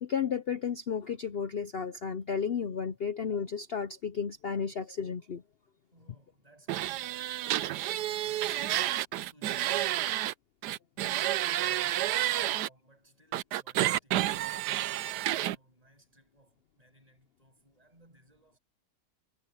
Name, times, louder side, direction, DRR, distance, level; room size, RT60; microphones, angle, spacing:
voice 1, 0.0-5.4, left 6 dB, 70° left, 0.5 m, -33 dB
voice 2, 5.9-7.5 7.8-10.3 11.4-18.6, right 1 dB, 20° right, 6.7 m, -61 dB
sound 1, 6.7-10.3 10.6-12.7 13.3-15.6, right 14 dB, 70° right, 1.2 m, -30 dB
omnidirectional pair, 1.9 m